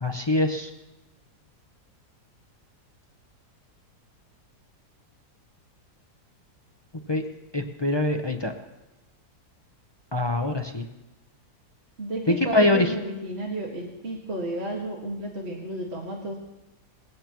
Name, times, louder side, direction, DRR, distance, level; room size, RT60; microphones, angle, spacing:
voice 1, 0.0-0.7 7.1-7.2 7.5-8.5 10.1-10.8 12.3-12.9, left 2 dB, 30° left, 5 dB, 0.4 m, -23 dB
voice 2, 12.0-16.4, right 1 dB, 40° right, -1 dB, 2.0 m, -32 dB
20.5 x 16.0 x 3.0 m, 0.99 s
omnidirectional pair, 1.7 m